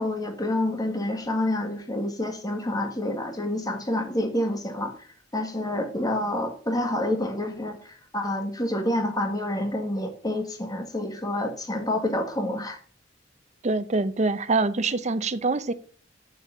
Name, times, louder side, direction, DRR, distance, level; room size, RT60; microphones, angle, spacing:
voice 1, 0.0-12.8, left 1 dB, 20° left, 1.7 m, -28 dB
voice 2, 13.6-15.7, right 3 dB, 40° right, 0.7 m, -25 dB
8.5 x 7.1 x 6.8 m
head